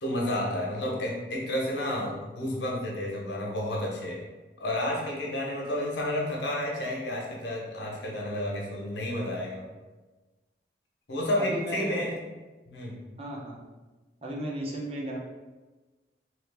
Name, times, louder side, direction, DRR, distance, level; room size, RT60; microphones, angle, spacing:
voice 1, 0.0-4.2 4.6-9.6 11.1-12.1 12.7-13.0, left 1 dB, 85° left, -2 dB, 0.8 m, -31 dB
voice 2, 11.4-12.1 13.2-13.5 14.2-15.2, right 1 dB, 35° right, -2 dB, 0.5 m, -35 dB
2.9 x 2.4 x 3.3 m, 1.2 s
head